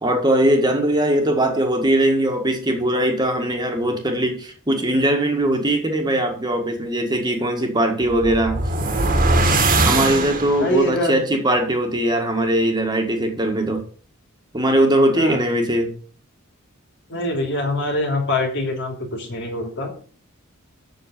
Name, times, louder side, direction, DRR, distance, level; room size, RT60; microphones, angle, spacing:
voice 1, 0.0-8.6 9.8-13.8 14.5-15.9, right 1 dB, 20° right, 3 dB, 1.7 m, -20 dB
sound 1, 8.0-10.9, right 2 dB, 40° right, 1.7 m, -20 dB
voice 2, 10.5-11.2 15.1-15.5 17.1-19.9, left 1 dB, 60° left, 3 dB, 2.8 m, -24 dB
7.8 x 6.5 x 6.7 m, 0.42 s
head